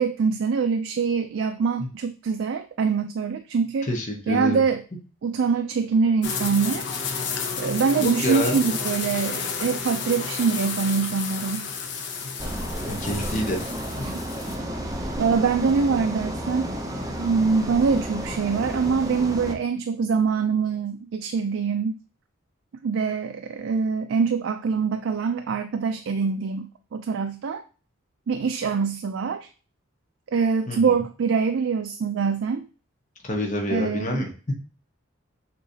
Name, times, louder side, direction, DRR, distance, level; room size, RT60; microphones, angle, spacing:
voice 1, 0.0-3.9 4.3-4.8 5.2-6.9 7.6-11.7 14.0-14.2 15.2-16.7 17.2-22.0 22.8-27.6 28.3-29.5 30.3-32.7 33.7-34.2, right 5 dB, 70° right, 7 dB, 0.3 m, -24 dB
voice 2, 3.9-4.6 8.0-8.6 12.8-13.6 30.7-30.8 33.3-34.3, left 1 dB, 35° left, 1 dB, 1.0 m, -26 dB
sound 1, 6.2-14.6, left 5 dB, 60° left, 0.7 m, -31 dB
sound 2, 12.4-19.5, equal, 15° right, 0.5 m, -32 dB
6.5 x 3.0 x 2.7 m, 0.37 s
head